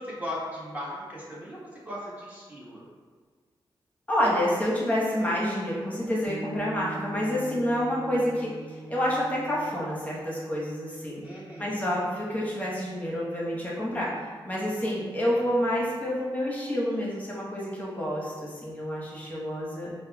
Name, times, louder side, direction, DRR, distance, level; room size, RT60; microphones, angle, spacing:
voice 1, 0.0-2.8 11.2-11.8 15.2-15.4, left 1 dB, 20° right, -7 dB, 1.3 m, -38 dB
voice 2, 4.1-11.2 11.6-20.0, equal, 15° left, -5 dB, 1.0 m, -28 dB
sound 1, 6.2-15.9, right 2 dB, 75° right, 0.8 m, -45 dB
5.0 x 2.2 x 2.3 m, 1.5 s
cardioid pair, 65°, 9 cm